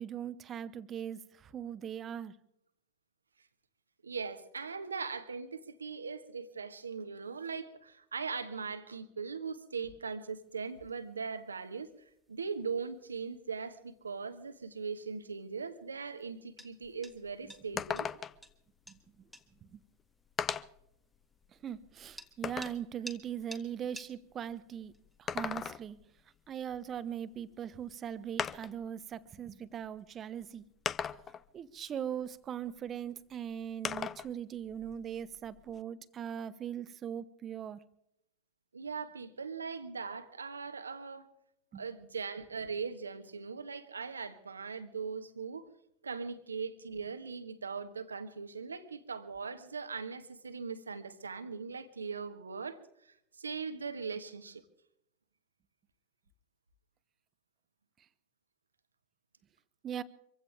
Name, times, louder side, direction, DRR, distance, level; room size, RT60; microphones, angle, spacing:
voice 1, 0.0-2.4 17.7-17.8 18.9-19.3 19.6-19.8 21.6-24.9 25.2-26.0 26.5-30.6 31.5-37.8 41.7-41.8 59.8-60.0, right 9 dB, 30° right, 0.9 m, -40 dB
voice 2, 4.0-11.9 12.3-18.1 38.7-41.3 41.7-45.7 46.0-54.6, right 5 dB, 80° right, 1.4 m, -40 dB
sound 1, 10.3-28.6, equal, 5° left, 2.1 m, -57 dB
sound 2, 16.8-16.9 17.3-17.4 17.8-18.5 19.6-19.7 20.4-20.9 21.4-22.8 25.1-26.0 27.5-27.6 28.4-28.8 29.8-29.9 30.9-31.5 33.8-34.3 34.7-35.8, left 7 dB, 25° left, 0.6 m, -37 dB
25.0 x 16.0 x 3.5 m
figure-of-eight pair, 85°, 0 cm